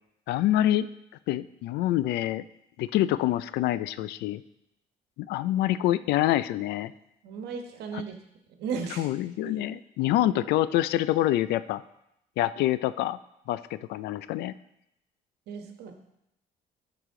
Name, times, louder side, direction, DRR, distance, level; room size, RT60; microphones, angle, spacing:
voice 1, 0.3-0.9 1.3-2.4 2.8-4.4 5.2-6.9 7.9-8.1 9.0-11.8 12.4-13.2 13.5-14.5, left 14 dB, 80° left, 16 dB, 0.4 m, -26 dB
voice 2, 7.2-8.2 8.6-9.1 9.4-9.6 15.5-15.9, right 6 dB, 75° right, 5 dB, 1.3 m, -35 dB
12.0 x 4.9 x 3.7 m, 0.82 s
cardioid pair, 110°, 17 cm